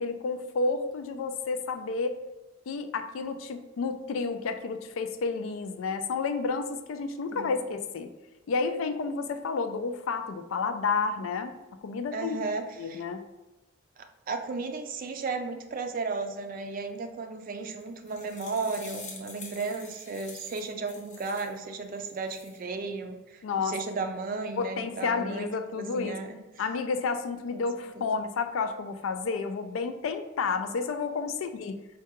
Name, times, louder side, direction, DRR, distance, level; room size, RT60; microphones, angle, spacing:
voice 1, 0.0-2.2 2.7-8.1 8.5-11.5 11.8-12.4 12.8-13.2 23.4-23.8 24.6-26.2 26.6-31.7, left 4 dB, 80° left, 8 dB, 0.3 m, -30 dB
voice 2, 12.1-13.0 14.3-25.5 25.8-26.4 27.5-27.7 28.0-28.1, right 4 dB, 45° right, 6 dB, 0.4 m, -34 dB
sound 1, 17.8-21.6 22.0-22.6, left 3 dB, 40° left, 0.7 m, -46 dB
4.6 x 2.2 x 2.9 m, 1.1 s
head